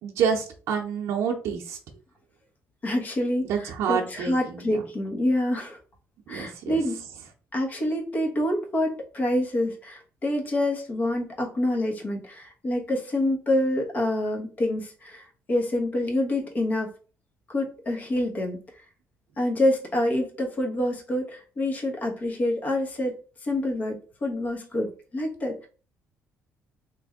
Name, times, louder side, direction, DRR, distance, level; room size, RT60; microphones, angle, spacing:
voice 1, 0.0-1.8 3.4-4.3 4.7-4.8 6.3-6.8, right 7 dB, 70° right, 0 dB, 0.7 m, -27 dB
voice 2, 2.8-5.8 6.3-7.0 7.5-16.9 17.5-18.6 19.4-23.1 23.4-25.7, left 1 dB, 30° left, 1 dB, 1.1 m, -27 dB
3.2 x 2.6 x 3.6 m, 0.37 s
cardioid pair, 135°, 5 cm